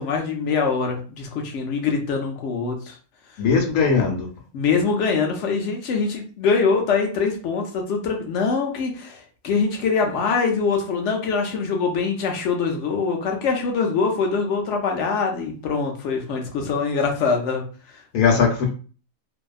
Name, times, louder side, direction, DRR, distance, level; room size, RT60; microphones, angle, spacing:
voice 1, 0.0-3.0 4.5-17.6 17.9-18.0, left 5 dB, 65° left, 2 dB, 0.9 m, -23 dB
voice 2, 3.4-4.3 18.1-18.7, left 5 dB, 85° left, 2 dB, 1.1 m, -19 dB
2.6 x 2.2 x 2.3 m, 0.39 s
omnidirectional pair, 1.5 m